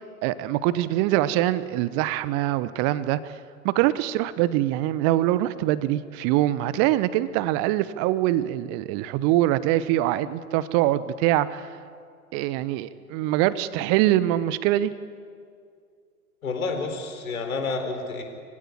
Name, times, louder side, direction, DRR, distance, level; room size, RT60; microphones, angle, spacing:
voice 1, 0.2-3.4 3.6-11.7 12.3-14.9, right 14 dB, 30° right, 16 dB, 1.0 m, -23 dB
voice 2, 16.4-18.2, left 4 dB, 70° left, 5 dB, 4.3 m, -29 dB
24.5 x 16.0 x 9.6 m, 2.3 s
figure-of-eight pair, 100°, 44 cm